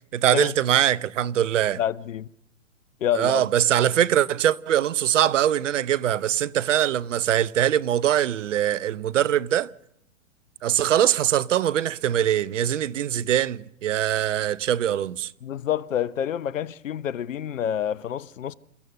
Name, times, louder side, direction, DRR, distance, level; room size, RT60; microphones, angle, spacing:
voice 1, 0.1-1.8 3.1-9.7 10.6-15.3, right 11 dB, 65° right, 0.8 m, -22 dB
voice 2, 1.8-2.3 3.0-3.4 15.4-18.5, left 10 dB, 70° left, 0.9 m, -28 dB
28.5 x 14.0 x 6.6 m
hypercardioid pair, 125°, 40 cm